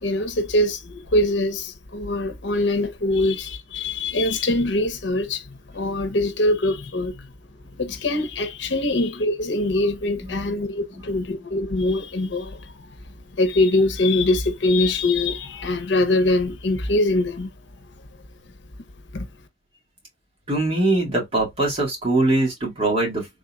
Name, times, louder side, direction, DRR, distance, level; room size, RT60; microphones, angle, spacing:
voice 1, 0.0-5.4 5.7-7.1 7.8-12.6 13.4-17.5 19.1-19.3, left 2 dB, 70° left, 0.8 m, -23 dB
voice 2, 10.2-10.5 20.5-23.3, right 2 dB, 35° right, 2.1 m, -22 dB
3.8 x 3.6 x 2.3 m
head